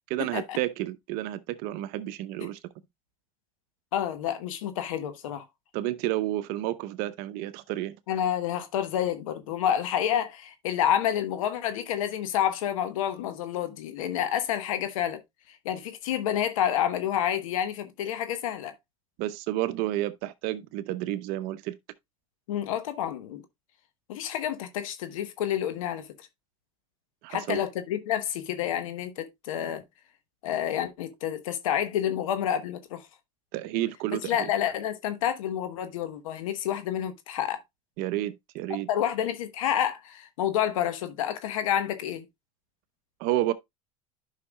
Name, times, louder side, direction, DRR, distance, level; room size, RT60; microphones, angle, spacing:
voice 1, 0.1-2.6 5.7-8.0 19.2-21.8 27.2-27.6 33.5-34.5 38.0-38.9 43.2-43.5, right 14 dB, 65° right, 0.8 m, -30 dB
voice 2, 3.9-5.4 8.1-15.2 15.6-18.7 22.5-23.4 24.1-26.1 27.3-29.8 30.4-33.0 34.3-37.6 38.9-42.2, left 10 dB, 80° left, 1.2 m, -29 dB
11.0 x 5.8 x 2.2 m
hypercardioid pair, 90°, 17 cm